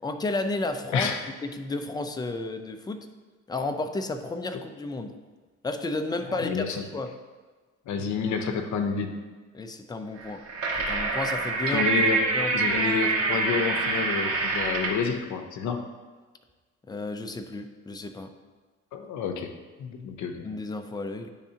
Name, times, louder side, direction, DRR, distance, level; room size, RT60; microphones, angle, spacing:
voice 1, 0.0-1.1 1.4-3.1 3.5-5.1 5.6-7.2 9.5-10.4 10.8-11.9 12.3-12.8 16.9-18.3 20.4-21.3, left 2 dB, 15° left, 7 dB, 0.5 m, -32 dB
voice 2, 6.4-6.8 7.9-9.1 11.7-12.2 12.5-15.8 18.9-19.5 19.8-20.5, left 6 dB, 70° left, 6 dB, 0.7 m, -29 dB
sound 1, 10.2-15.1, right 3 dB, 55° right, 1.4 m, -26 dB
9.8 x 3.6 x 2.8 m, 1.4 s
cardioid pair, 90°, 30 cm